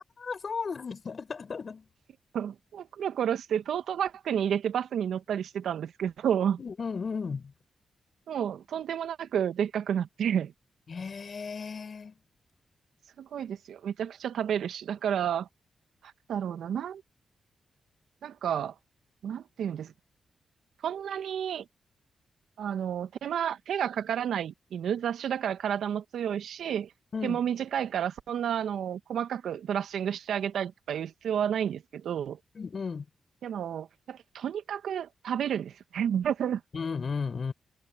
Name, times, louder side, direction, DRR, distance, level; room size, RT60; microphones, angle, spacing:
voice 1, 0.2-1.9 6.6-7.5 10.9-12.2 27.1-27.4 32.5-33.1 36.7-37.5, left 5 dB, 55° left, 5.0 m, -34 dB
voice 2, 2.3-6.6 8.3-10.5 13.2-15.5 16.0-17.0 18.2-18.7 19.2-19.9 20.8-21.6 22.6-26.9 27.2-32.4 33.4-36.6, right 9 dB, 75° right, 1.6 m, -31 dB
supercardioid pair, 40°, 0 cm